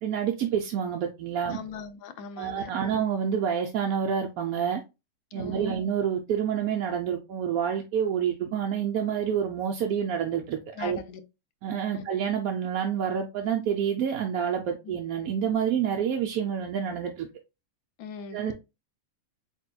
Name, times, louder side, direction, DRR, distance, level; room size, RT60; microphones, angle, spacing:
voice 1, 0.0-1.6 2.4-4.8 5.3-11.0 11.6-17.3 18.3-18.5, right 8 dB, 85° right, 1.1 m, -28 dB
voice 2, 1.4-2.7 5.3-5.9 10.8-11.2 11.9-12.0 14.8-15.0 18.0-18.5, left 5 dB, 80° left, 1.1 m, -40 dB
4.4 x 3.4 x 2.2 m
omnidirectional pair, 1.5 m